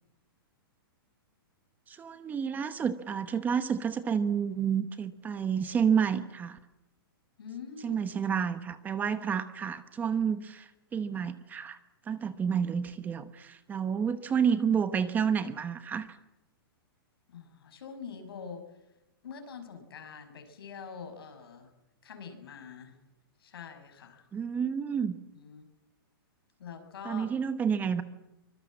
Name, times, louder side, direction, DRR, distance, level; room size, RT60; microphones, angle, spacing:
voice 1, 1.9-6.6 7.8-11.8 12.1-16.1 24.3-25.2 27.0-28.0, right 7 dB, 15° right, 12 dB, 1.0 m, -30 dB
voice 2, 7.4-8.0 17.3-18.6 19.2-21.7 22.0-23.0 23.4-24.3 25.3-25.6 26.6-27.3, left 6 dB, 75° left, 7 dB, 5.7 m, -44 dB
24.5 x 21.5 x 7.5 m, 0.95 s
hypercardioid pair, 155°, 13 cm